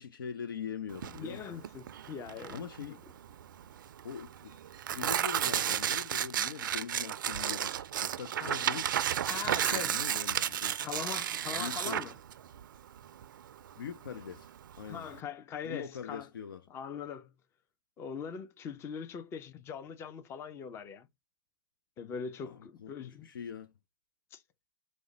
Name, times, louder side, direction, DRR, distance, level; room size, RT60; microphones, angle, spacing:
voice 1, 0.0-1.6 2.5-3.0 4.0-4.5 4.9-8.9 9.6-10.9 11.6-12.0 13.8-15.1 15.6-16.6 22.4-23.7, left 7 dB, 75° left, 0.5 m, -42 dB
Tearing, 0.9-15.2, right 10 dB, 70° right, 0.4 m, -33 dB
voice 2, 1.1-3.0 8.4-8.6 9.3-10.0 10.8-12.1 14.9-16.3 16.7-17.3 18.0-21.1 22.0-23.3 24.3-24.4, left 7 dB, 25° left, 0.6 m, -41 dB
4.8 x 2.1 x 3.9 m
hypercardioid pair, 120°, 11 cm